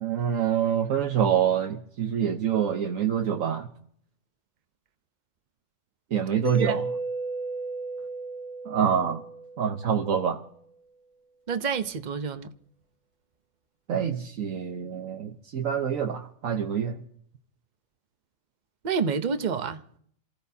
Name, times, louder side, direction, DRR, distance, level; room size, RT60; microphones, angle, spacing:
voice 1, 0.0-3.7 6.1-6.8 8.7-9.2 9.6-10.4 13.9-17.0, right 8 dB, 75° right, 1.3 m, -26 dB
Mallet percussion, 6.4-10.2, right 2 dB, 65° left, 3.0 m, -34 dB
voice 2, 11.5-12.5 18.8-20.0, right 6 dB, 40° right, 0.8 m, -28 dB
27.5 x 16.0 x 2.8 m
omnidirectional pair, 1.4 m